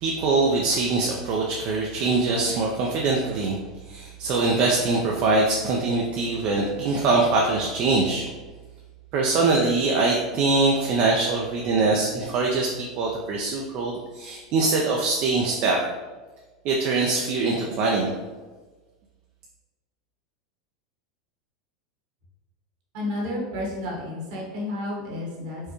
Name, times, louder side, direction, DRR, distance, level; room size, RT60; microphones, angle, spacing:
voice 1, 0.0-3.6 3.8-8.3 9.1-15.8 16.6-18.1, right 3 dB, 50° right, -2 dB, 0.5 m, -23 dB
voice 2, 22.9-25.7, left 1 dB, 65° right, -3 dB, 1.4 m, -31 dB
4.5 x 2.2 x 3.0 m, 1.3 s
hypercardioid pair, 100°, 4 cm